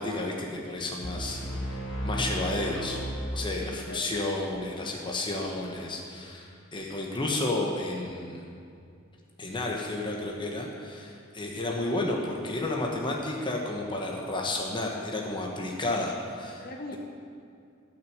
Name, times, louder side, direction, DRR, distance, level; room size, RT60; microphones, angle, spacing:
voice 1, 0.0-1.8 2.0-3.0 3.3-8.5 9.4-16.7, left 2 dB, 25° left, -1 dB, 1.2 m, -32 dB
sound 1, 1.0-4.0, right 1 dB, 85° left, 1.9 m, -34 dB
voice 2, 3.6-4.5 16.6-17.0, left 2 dB, 50° left, 2 dB, 1.3 m, -41 dB
13.0 x 6.1 x 8.0 m, 2.4 s
head